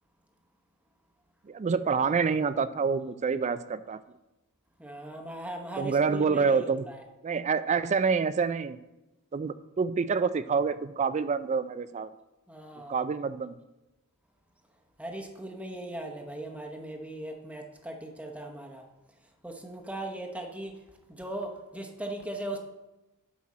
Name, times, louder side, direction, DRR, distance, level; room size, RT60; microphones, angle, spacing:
voice 1, 1.5-4.0 5.8-6.9 7.2-8.8 9.3-12.1 12.9-13.6, right 5 dB, 30° right, 14 dB, 0.3 m, -27 dB
voice 2, 4.8-7.0 12.5-13.0 15.0-18.8 19.4-20.8 21.1-22.6, right 1 dB, 5° right, 2 dB, 0.9 m, -38 dB
9.7 x 6.1 x 4.2 m, 1.0 s
head